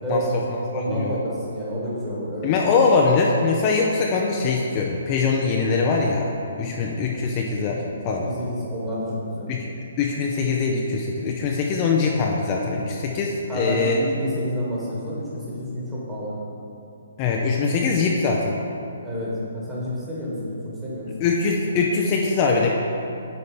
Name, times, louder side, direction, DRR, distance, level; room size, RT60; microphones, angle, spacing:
voice 1, 0.0-0.4 0.7-2.5 8.2-9.5 13.5-16.3 19.0-21.1, equal, 15° right, -8 dB, 1.9 m, -29 dB
voice 2, 2.4-6.3 6.6-8.3 9.5-9.7 10.0-14.0 17.2-18.6 21.2-22.7, left 4 dB, 30° left, -1 dB, 0.6 m, -22 dB
8.4 x 4.1 x 5.2 m, 2.6 s
figure-of-eight pair, 135°, 0 cm